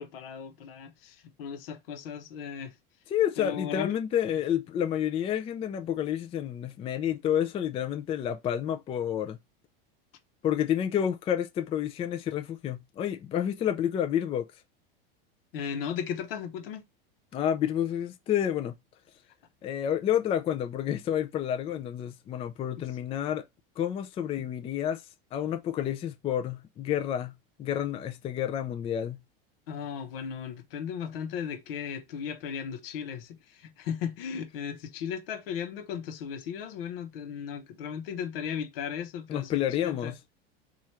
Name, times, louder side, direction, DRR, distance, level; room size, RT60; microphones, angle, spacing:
voice 1, 0.0-2.7 3.4-4.0 15.5-16.8 29.7-40.1, left 7 dB, 75° left, 0.9 m, -36 dB
voice 2, 3.1-9.4 10.4-14.5 17.3-18.8 19.6-23.4 23.8-25.0 25.3-27.3 27.6-29.2 39.3-40.2, left 10 dB, 20° left, 0.3 m, -29 dB
3.1 x 2.4 x 4.2 m
supercardioid pair, 120°, 29 cm